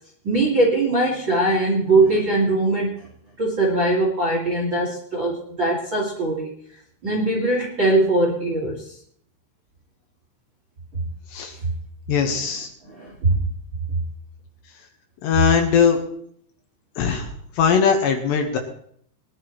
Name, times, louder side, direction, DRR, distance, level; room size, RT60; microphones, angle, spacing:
voice 1, 0.2-3.1 3.4-6.5 7.0-8.9 12.2-12.4 12.9-13.4, right 2 dB, 45° right, -3 dB, 1.5 m, -21 dB
voice 2, 12.1-12.7 15.2-16.0 17.0-17.3 17.6-18.6, left 7 dB, 70° left, 4 dB, 3.2 m, -19 dB
21.5 x 11.5 x 3.1 m, 0.64 s
omnidirectional pair, 5.7 m